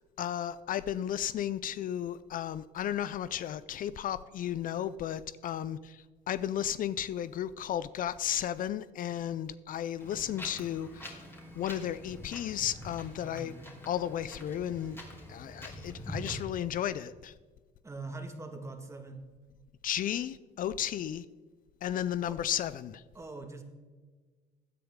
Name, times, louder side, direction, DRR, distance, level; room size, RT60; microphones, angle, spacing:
voice 1, 0.0-11.2 11.6-13.5 13.9-15.0 15.3-17.3 19.8-21.2 21.8-23.0, left 10 dB, 55° left, 15 dB, 0.5 m, -34 dB
Wind, 10.0-16.4, equal, 15° left, 2.8 m, -45 dB
voice 2, 13.2-13.7 17.8-19.2 22.2-22.4 23.1-23.6, right 3 dB, 15° right, 5 dB, 1.8 m, -43 dB
16.0 x 10.0 x 3.7 m, 1.4 s
cardioid pair, 110°, 17 cm